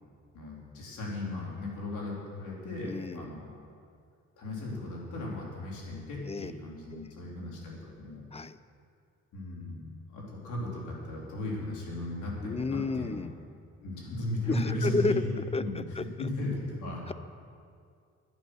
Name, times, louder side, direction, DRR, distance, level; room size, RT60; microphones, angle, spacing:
voice 1, 0.3-3.5 4.4-8.2 9.3-9.8 10.1-13.2 13.8-17.0, left 1 dB, 80° left, -3 dB, 4.0 m, -36 dB
voice 2, 2.8-3.3 6.2-6.5 6.9-7.1 8.3-8.6 12.4-13.3 14.5-16.0 17.1-17.2, left 3 dB, 20° left, 14 dB, 0.5 m, -32 dB
12.0 x 11.0 x 6.3 m, 2.3 s
cardioid pair, 90°, 30 cm